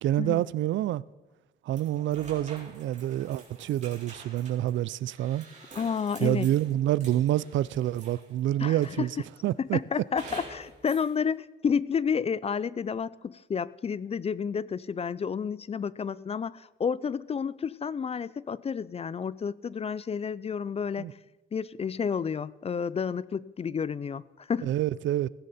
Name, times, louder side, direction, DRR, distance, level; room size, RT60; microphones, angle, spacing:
voice 1, 0.0-1.0 1.6-5.5 6.2-9.2 9.4-9.8 21.0-21.1 24.6-25.3, right 13 dB, 70° right, 0.5 m, -27 dB
sound 1, 1.7-8.4 8.8-9.4 10.2-11.1, right 3 dB, 35° right, 3.9 m, -48 dB
voice 2, 5.8-6.5 8.6-9.1 9.6-21.0 21.5-24.7, left 6 dB, 30° left, 0.4 m, -30 dB
15.5 x 15.5 x 4.2 m
cardioid pair, 90°, 20 cm